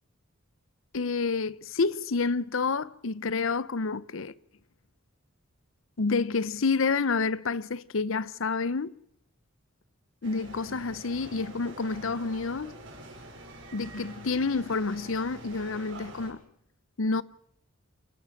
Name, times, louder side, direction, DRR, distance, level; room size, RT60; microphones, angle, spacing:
voice 1, 0.9-4.3 6.0-8.9 10.2-12.8 13.7-16.4 17.0-17.2, left 4 dB, 70° left, 0.7 m, -29 dB
sound 1, 10.2-16.3, right 1 dB, 60° right, 5.9 m, -46 dB
27.5 x 11.5 x 8.7 m
head